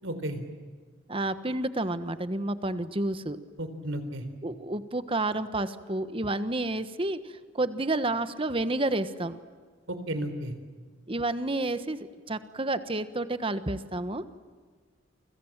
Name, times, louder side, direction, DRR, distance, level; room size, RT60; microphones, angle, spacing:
voice 1, 0.0-0.4 3.6-4.2 9.9-10.5, right 1 dB, 80° right, 9 dB, 4.0 m, -33 dB
voice 2, 1.1-3.4 4.4-9.4 11.1-14.2, right 2 dB, 30° right, 11 dB, 1.3 m, -30 dB
29.0 x 25.5 x 7.4 m, 1.5 s
head